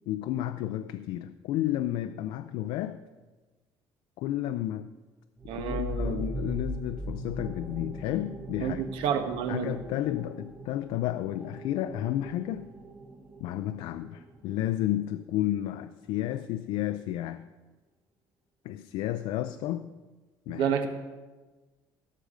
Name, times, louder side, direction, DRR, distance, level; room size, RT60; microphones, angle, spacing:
voice 1, 0.0-3.0 4.2-4.9 5.5-8.8 9.5-12.7 13.4-17.4 18.6-19.9 20.5-20.7, left 13 dB, 75° left, 9 dB, 0.5 m, -32 dB
sound 1, 5.4-14.8, equal, 15° right, 1.0 m, -40 dB
voice 2, 5.5-6.3 8.6-9.7 20.5-20.9, right 7 dB, 75° right, 7 dB, 1.3 m, -30 dB
16.5 x 6.7 x 5.1 m, 1.2 s
cardioid pair, 180°, 9 cm